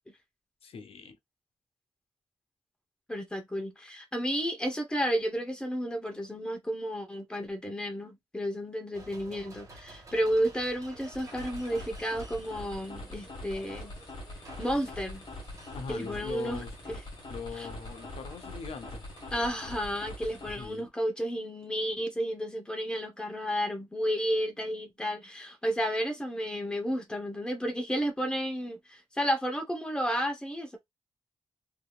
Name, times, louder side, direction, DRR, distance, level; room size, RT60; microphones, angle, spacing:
voice 1, 0.6-1.2 15.7-16.8 17.3-19.1 20.6-20.9, left 5 dB, 65° left, 0.6 m, -41 dB
voice 2, 3.1-13.9 14.6-15.2 15.9-17.0 17.6-17.7 19.3-30.8, equal, 10° left, 0.8 m, -32 dB
sound 1, 8.9-20.0, right 2 dB, 30° right, 1.3 m, -53 dB
sound 2, 10.9-20.9, left 1 dB, 45° left, 1.6 m, -43 dB
3.4 x 2.8 x 2.3 m
wide cardioid pair, 140°, 11 cm